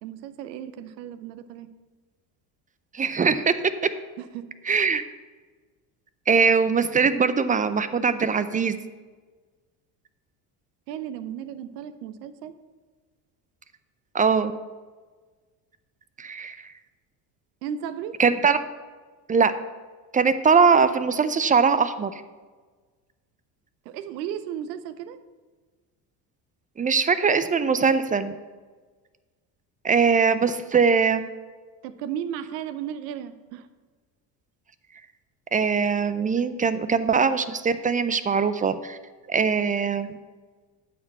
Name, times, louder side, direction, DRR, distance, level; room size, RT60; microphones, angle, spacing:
voice 1, 0.0-1.7 4.2-4.4 10.9-12.5 17.6-18.2 23.8-25.2 31.8-33.7, right 9 dB, 80° right, 13 dB, 0.8 m, -34 dB
voice 2, 2.9-3.6 3.8-3.9 4.7-5.0 6.3-8.8 14.1-14.5 16.2-16.6 18.2-18.6 19.3-19.5 20.1-22.2 26.8-28.3 29.8-31.3 35.5-39.0 39.3-40.1, right 5 dB, 20° right, 13 dB, 0.4 m, -21 dB
8.8 x 5.2 x 7.4 m, 1.4 s
hypercardioid pair, 80°, 49 cm